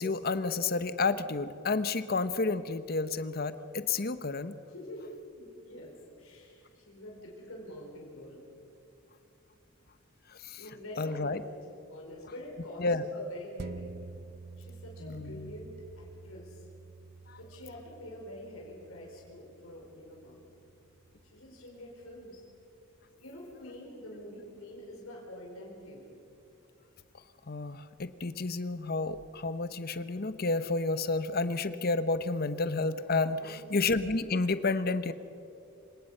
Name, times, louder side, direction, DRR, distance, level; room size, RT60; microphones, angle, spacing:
voice 1, 0.0-4.5 10.4-10.6 11.0-11.4 12.8-13.1 15.0-15.5 17.3-17.4 27.5-35.1, left 3 dB, 45° left, 13 dB, 0.9 m, -30 dB
voice 2, 4.7-8.5 10.4-11.4 11.9-14.0 14.6-16.6 17.4-20.4 21.3-22.4 23.2-26.2 33.3-33.7, left 1 dB, 85° left, -2 dB, 4.5 m, -46 dB
sound 1, 13.6-22.4 22.8-22.9, right 3 dB, 50° right, 0.6 m, -49 dB
27.0 x 18.0 x 5.5 m, 2.8 s
head